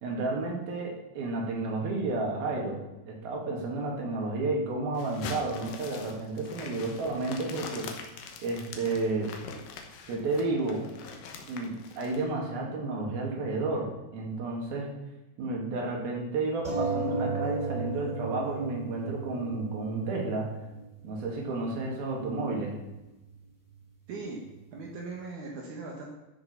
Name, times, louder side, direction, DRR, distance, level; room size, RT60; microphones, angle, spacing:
voice 1, 0.0-7.9 8.4-9.3 10.1-10.9 11.5-14.9 15.4-20.5 21.0-22.7, right 3 dB, 85° right, -1 dB, 4.1 m, -31 dB
sound 1, 4.9-12.2, left 5 dB, 75° left, 2.8 m, -43 dB
sound 2, 16.6-21.6 22.4-22.5 22.8-22.9, right 3 dB, 10° right, 4.6 m, -34 dB
voice 2, 24.1-24.4 24.7-26.1, right 3 dB, 65° right, -1 dB, 2.7 m, -39 dB
12.5 x 6.9 x 5.7 m, 1.0 s
omnidirectional pair, 4.2 m